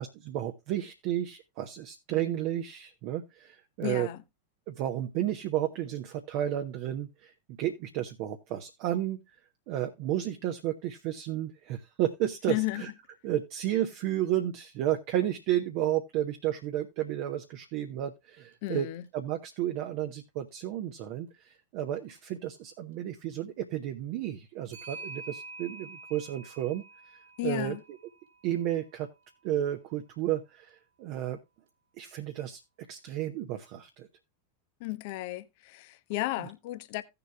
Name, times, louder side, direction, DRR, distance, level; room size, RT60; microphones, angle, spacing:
voice 1, 0.0-4.1 4.7-9.2 9.7-12.9 13.2-18.9 19.1-27.8 28.4-29.1 29.4-31.4 32.0-32.6 32.9-34.1, right 12 dB, 45° right, 0.9 m, -32 dB
voice 2, 3.8-4.2 12.5-12.9 18.6-19.0 27.4-27.8 34.8-37.0, left 18 dB, 50° left, 0.7 m, -33 dB
Clock, 18.5-18.6 19.0-19.1 21.9-22.2 24.7-29.0, right 3 dB, 60° right, 2.3 m, -47 dB
16.5 x 6.9 x 2.2 m
figure-of-eight pair, 90°, 0 cm